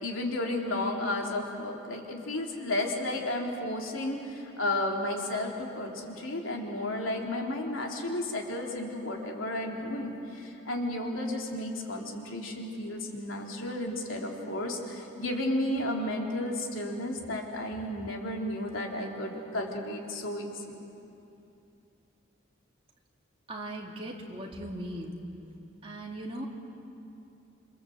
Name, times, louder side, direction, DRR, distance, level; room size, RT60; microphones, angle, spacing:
voice 1, 0.0-20.8, left 1 dB, 90° left, 0 dB, 3.5 m, -33 dB
voice 2, 23.5-25.2 25.8-26.5, right 1 dB, 30° right, -1 dB, 2.8 m, -38 dB
28.0 x 26.0 x 7.9 m, 2.7 s
head